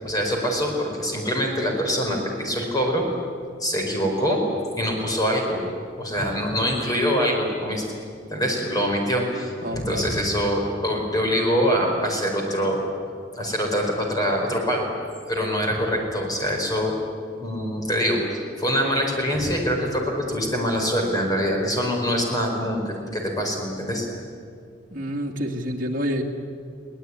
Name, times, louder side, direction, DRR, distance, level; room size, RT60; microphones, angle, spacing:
voice 1, 0.0-3.0 3.6-4.4 4.8-5.6 5.9-7.8 8.3-12.8 13.3-14.9 15.3-17.0 17.4-24.1, equal, 20° left, 1 dB, 4.7 m, -24 dB
voice 2, 9.6-10.1 24.9-26.2, equal, 45° right, 0 dB, 2.4 m, -28 dB
22.5 x 18.5 x 9.8 m, 2.3 s
head